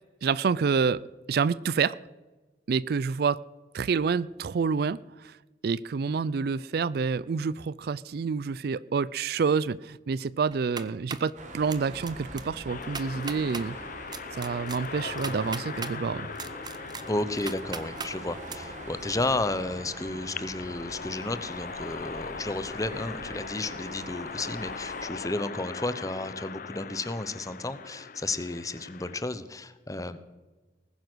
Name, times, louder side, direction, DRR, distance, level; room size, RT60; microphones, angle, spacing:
voice 1, 0.2-2.0 2.7-3.4 3.7-5.4 5.6-13.8 14.3-16.3, right 5 dB, 60° right, 20 dB, 0.4 m, -28 dB
sound 1, 10.5-11.3 11.7-12.1 12.4-12.5 12.8-13.6 14.1-15.9 16.4-18.1 18.5-18.6, right 5 dB, 25° right, 0.7 m, -38 dB
sound 2, 11.4-25.1, right 1 dB, 45° right, 2.1 m, -44 dB
sound 3, 12.7-29.2, left 5 dB, 50° left, 0.6 m, -40 dB
voice 2, 17.1-30.2, left 2 dB, 20° left, 13 dB, 0.9 m, -32 dB
19.5 x 9.7 x 6.2 m, 1.2 s
head